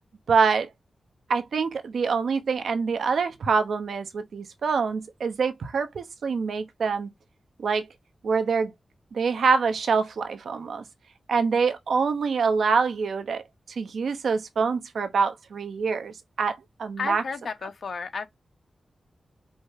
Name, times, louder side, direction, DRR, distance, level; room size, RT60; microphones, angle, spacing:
voice 1, 0.3-0.7 1.3-7.1 7.6-7.9 8.2-8.7 9.1-10.8 11.3-17.2, right 5 dB, 80° right, 0.8 m, -25 dB
voice 2, 17.0-18.3, left 5 dB, 65° left, 1.0 m, -32 dB
5.1 x 2.0 x 4.7 m
cardioid pair, 75°, 0 cm